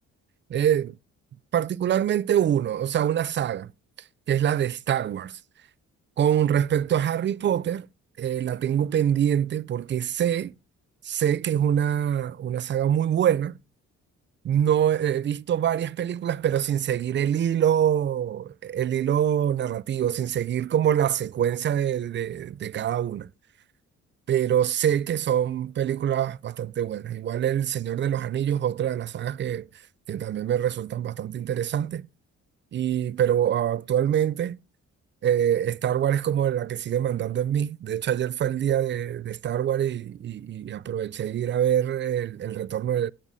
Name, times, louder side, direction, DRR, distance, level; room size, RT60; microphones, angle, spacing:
voice 1, 0.5-1.0 1.5-3.7 4.3-5.4 6.2-7.9 8.2-10.5 11.0-13.6 14.4-23.3 24.3-29.7 30.1-32.1 32.7-34.6 35.2-43.1, right 10 dB, 40° right, 0.4 m, -25 dB
9.0 x 8.9 x 4.0 m
cardioid pair, 90°, 30 cm